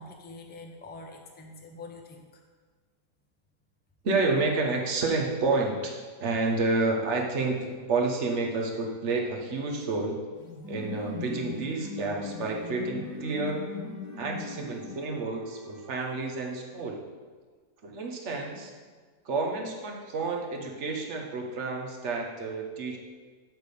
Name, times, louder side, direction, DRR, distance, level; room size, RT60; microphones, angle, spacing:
voice 1, 0.0-2.3, left 2 dB, 15° left, 2 dB, 0.4 m, -45 dB
voice 2, 4.0-10.2 10.7-13.6 14.2-17.0 17.8-18.7 19.2-23.0, right 3 dB, 50° right, 1 dB, 1.3 m, -29 dB
sound 1, 10.4-15.3, left 3 dB, 85° left, 2.9 m, -39 dB
Wind instrument woodwind instrument, 11.9-17.1, right 2 dB, 70° right, 2.2 m, -50 dB
9.1 x 3.7 x 6.6 m, 1.5 s
omnidirectional pair, 1.6 m